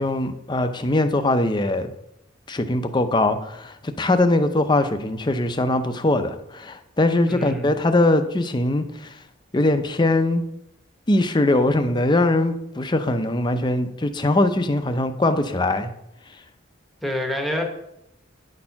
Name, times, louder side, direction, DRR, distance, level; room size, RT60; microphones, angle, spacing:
voice 1, 0.0-1.9 2.5-9.1 9.5-10.4 11.1-15.9, left 2 dB, 20° left, 9 dB, 0.5 m, -21 dB
voice 2, 7.3-7.7 17.0-17.6, equal, ahead, 2 dB, 0.9 m, -27 dB
9.6 x 4.3 x 5.7 m, 0.81 s
head